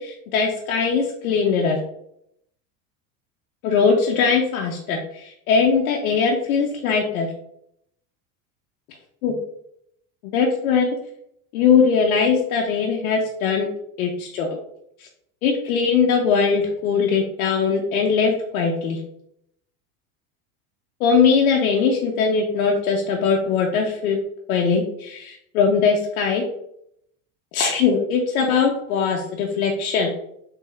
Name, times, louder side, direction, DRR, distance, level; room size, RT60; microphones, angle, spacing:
voice 1, 0.0-1.8 3.6-7.3 9.2-9.3 10.3-10.9 11.5-13.7 14.0-14.5 15.4-19.0 21.0-24.2 24.5-26.4 27.5-30.3, left 5 dB, 85° left, 0 dB, 0.7 m, -20 dB
3.4 x 3.4 x 3.3 m, 0.75 s
supercardioid pair, 110°, 42 cm